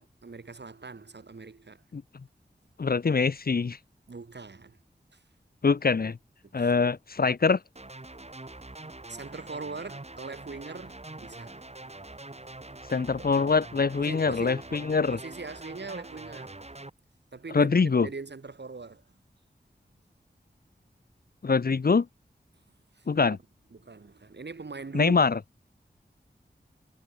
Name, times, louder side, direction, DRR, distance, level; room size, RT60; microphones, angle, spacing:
voice 1, 0.0-1.8 4.1-4.8 5.1-5.2 6.4-6.8 9.1-11.6 14.0-16.6 17.3-17.8 18.0-19.0 22.9-23.4 23.7-25.2, right 4 dB, 75° right, 6.6 m, -41 dB
voice 2, 2.8-3.8 5.6-6.2 6.5-7.6 12.9-15.2 17.5-18.1 21.4-22.1 23.1-23.4 24.9-25.4, left 4 dB, 60° left, 0.8 m, -24 dB
sound 1, 7.8-16.9, right 2 dB, 35° right, 4.9 m, -44 dB
wide cardioid pair, 60°, 18 cm